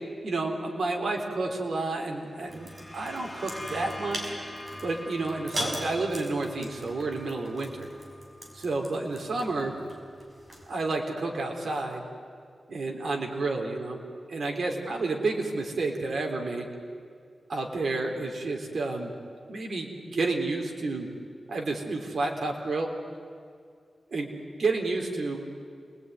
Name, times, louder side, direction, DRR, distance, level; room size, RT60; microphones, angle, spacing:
voice 1, 0.2-4.3 4.8-7.9 8.5-9.7 10.7-12.0 12.7-14.0 14.3-16.7 17.5-19.1 19.5-21.1 21.5-22.9 24.1-24.3 24.6-25.4, right 3 dB, 70° right, 1 dB, 3.8 m, -30 dB
sound 1, 2.3-9.9, left 1 dB, 15° left, 2.8 m, -45 dB
sound 2, 2.5-10.8, equal, 40° right, 5.9 m, -40 dB
28.5 x 20.5 x 9.7 m, 2.2 s
wide cardioid pair, 95°, 0 cm